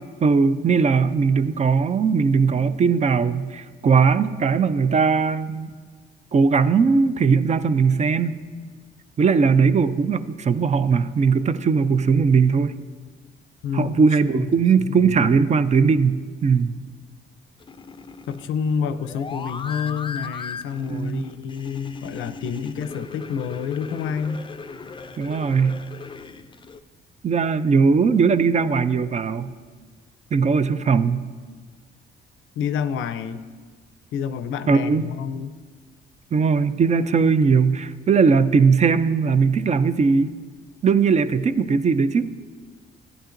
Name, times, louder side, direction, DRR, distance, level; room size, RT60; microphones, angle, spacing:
voice 1, 0.2-5.7 6.3-8.3 9.2-12.8 13.7-16.8 20.9-21.3 25.2-25.8 27.2-29.5 30.3-31.2 34.7-35.0 36.3-40.3 40.8-42.3, right 5 dB, 35° right, 13 dB, 0.4 m, -19 dB
voice 2, 13.6-14.0 14.3-15.2 18.3-24.4 32.6-33.4 34.1-35.5, left 7 dB, 80° left, 12 dB, 0.5 m, -28 dB
sound 1, 17.6-26.8, left 5 dB, 25° left, 0.4 m, -38 dB
13.0 x 9.6 x 2.5 m, 1.5 s
cardioid pair, 90°, 20 cm